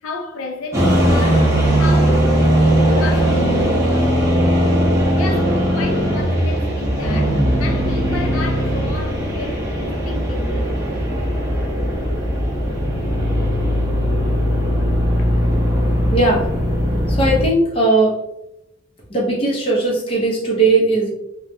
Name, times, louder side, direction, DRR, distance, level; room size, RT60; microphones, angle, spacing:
voice 1, 0.0-4.4 5.1-10.8 15.2-15.6, left 2 dB, 85° left, 0.4 m, -32 dB
sound 1, 0.7-17.5, equal, 15° right, 0.8 m, -18 dB
voice 2, 16.1-16.5 17.1-18.2 19.1-21.1, right 2 dB, 25° left, 0.7 m, -17 dB
3.1 x 2.2 x 2.6 m
head